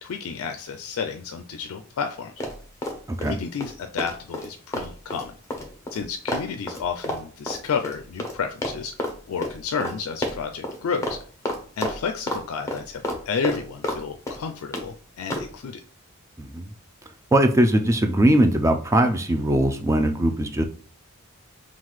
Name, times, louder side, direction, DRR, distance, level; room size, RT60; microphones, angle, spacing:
voice 1, 0.0-2.3 3.3-5.3 5.9-8.9 9.3-11.2 11.8-15.8, left 6 dB, 70° left, 6 dB, 0.4 m, -31 dB
Run, 2.4-3.3 3.6-8.4 8.6-9.1 9.4-9.5 9.8-9.9 10.2-10.8 11.0-11.2 11.4-12.4 12.7-14.0 14.3-14.9 15.3-15.5, left 1 dB, 15° left, 0.7 m, -29 dB
voice 2, 16.4-16.7 17.3-20.6, right 1 dB, 15° right, 6 dB, 0.4 m, -20 dB
5.6 x 2.4 x 3.1 m, 0.42 s
head